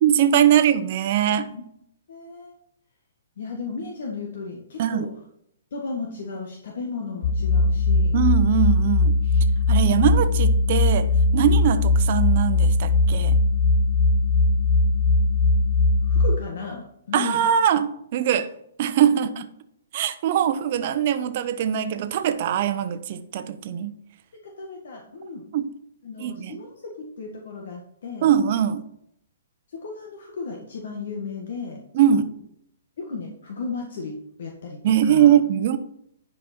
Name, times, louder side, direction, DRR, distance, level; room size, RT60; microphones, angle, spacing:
voice 1, 0.0-1.5 4.8-5.1 8.1-9.1 9.7-13.4 17.1-18.5 18.8-19.4 19.9-24.0 25.5-25.7 26.2-26.6 28.2-28.8 31.9-32.3 34.8-35.8, right 9 dB, 45° right, 10 dB, 0.9 m, -21 dB
voice 2, 2.1-2.5 3.4-5.1 5.7-8.2 16.0-17.4 19.1-19.4 24.4-25.4 26.0-28.3 29.7-31.8 33.0-34.8 35.1-35.3, left 4 dB, 70° left, 0 dB, 1.7 m, -35 dB
sound 1, 7.2-16.3, left 3 dB, 45° left, 0.9 m, -19 dB
10.5 x 5.3 x 4.4 m, 0.73 s
hypercardioid pair, 145°, 0 cm